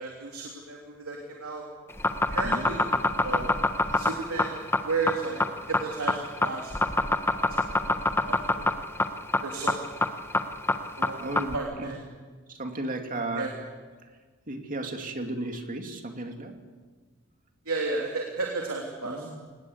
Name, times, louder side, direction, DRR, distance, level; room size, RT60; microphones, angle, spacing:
voice 1, 0.0-1.7 2.3-2.9 3.2-3.6 3.9-4.5 4.9-5.4 5.7-6.8 7.5-7.7 8.3-8.8 9.4-9.9 11.0-12.0 13.3-13.5 17.6-19.2, right 3 dB, 75° right, 0 dB, 3.2 m, -33 dB
sound 1, 1.9-11.6, left 2 dB, 10° left, 1.1 m, -24 dB
voice 2, 11.2-11.9 12.5-13.5 14.5-16.5 19.0-19.3, right 2 dB, 40° right, 4 dB, 2.7 m, -34 dB
24.0 x 20.0 x 8.2 m, 1.4 s
head